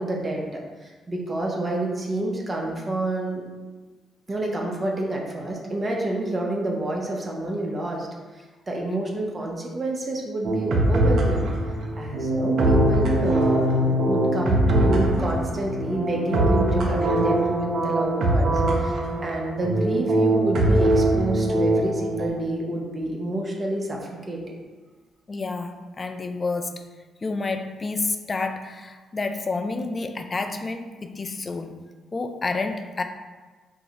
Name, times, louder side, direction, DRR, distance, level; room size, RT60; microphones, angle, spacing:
voice 1, 0.0-3.4 4.3-8.1 8.3-11.5 12.0-24.0 24.3-24.5, right 2 dB, 30° right, -1 dB, 0.8 m, -29 dB
sound 1, 10.4-22.3, right 1 dB, 65° right, 0.7 m, -22 dB
voice 2, 25.3-26.8 27.2-31.8 32.1-33.0, left 3 dB, 30° left, 7 dB, 0.4 m, -29 dB
4.7 x 2.3 x 4.0 m, 1.3 s
cardioid pair, 90°, 0 cm